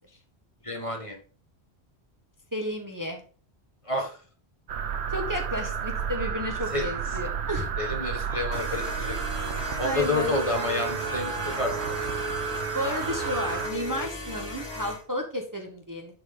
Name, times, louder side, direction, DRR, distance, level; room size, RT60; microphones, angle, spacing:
voice 1, 0.6-1.2 3.8-4.2 6.7-6.9 7.8-9.2 9.8-11.7, left 2 dB, 30° left, 3 dB, 1.6 m, -29 dB
voice 2, 2.5-3.2 5.1-7.7 9.8-10.3 12.7-16.1, left 1 dB, 20° right, 3 dB, 1.2 m, -32 dB
sound 1, 4.7-13.7, right 7 dB, 85° right, 1.0 m, -32 dB
sound 2, 8.5-15.0, left 2 dB, 80° left, 3.1 m, -37 dB
Wind instrument woodwind instrument, 10.4-14.1, right 5 dB, 40° right, 2.9 m, -37 dB
9.9 x 4.5 x 3.7 m, 0.39 s
omnidirectional pair, 1.1 m